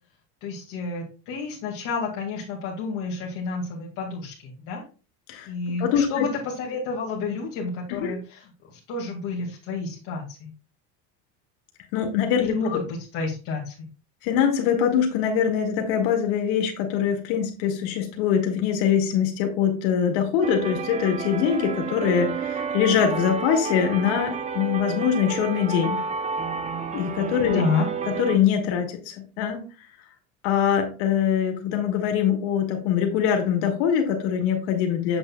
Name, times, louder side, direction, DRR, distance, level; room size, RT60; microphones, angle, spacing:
voice 1, 0.4-4.8 5.5-8.4 8.7-10.5 12.4-13.7 27.5-27.9, left 4 dB, 55° left, -3 dB, 2.2 m, -30 dB
voice 2, 5.8-6.2 7.9-8.2 11.9-12.8 14.2-26.0 26.9-27.6 28.1-29.9 30.4-35.2, left 8 dB, 75° left, 3 dB, 2.1 m, -23 dB
sound 1, 20.4-28.4, right 6 dB, 20° right, 0.6 m, -30 dB
8.0 x 6.3 x 2.3 m, 0.35 s
cardioid pair, 135°, 36 cm